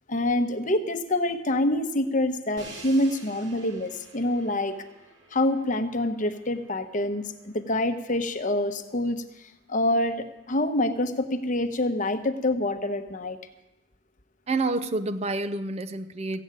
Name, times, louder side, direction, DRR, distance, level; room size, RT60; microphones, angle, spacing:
voice 1, 0.1-4.8 5.3-13.4, left 1 dB, 40° left, 8 dB, 1.0 m, -26 dB
Crash cymbal, 2.6-8.5, right 3 dB, 65° right, 2.4 m, -49 dB
voice 2, 14.5-16.4, right 2 dB, 35° right, 11 dB, 0.5 m, -28 dB
15.0 x 8.0 x 8.9 m, 1.0 s
head